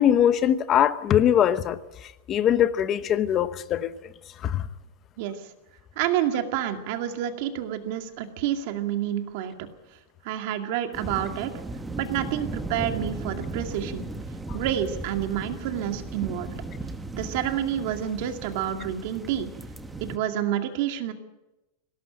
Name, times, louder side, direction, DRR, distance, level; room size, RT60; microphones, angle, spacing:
voice 1, 0.0-1.8 2.3-3.9 4.4-4.7, left 10 dB, 25° left, 0.9 m, -21 dB
voice 2, 6.0-9.7 10.2-11.5 12.0-14.1 14.5-16.6 17.1-19.5 20.0-21.1, right 10 dB, 50° right, 2.2 m, -29 dB
sound 1, 10.9-20.2, right 2 dB, 5° right, 1.1 m, -36 dB
20.0 x 18.0 x 9.0 m
supercardioid pair, 170°, 0 cm